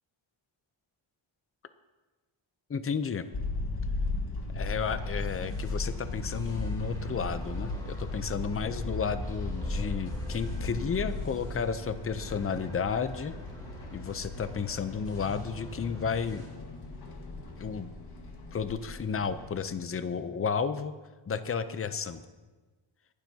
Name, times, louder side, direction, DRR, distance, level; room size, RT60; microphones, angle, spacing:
voice 1, 2.7-3.3 4.5-13.3 13.9-16.4 17.6-17.9 18.5-20.9 21.2-22.2, left 6 dB, 30° left, 11 dB, 0.6 m, -32 dB
sound 1, 3.3-19.5, left 2 dB, 50° left, 1.8 m, -36 dB
sound 2, 4.9-16.5, equal, 10° left, 3.4 m, -47 dB
25.0 x 12.0 x 2.8 m, 1.3 s
wide cardioid pair, 160°, 48 cm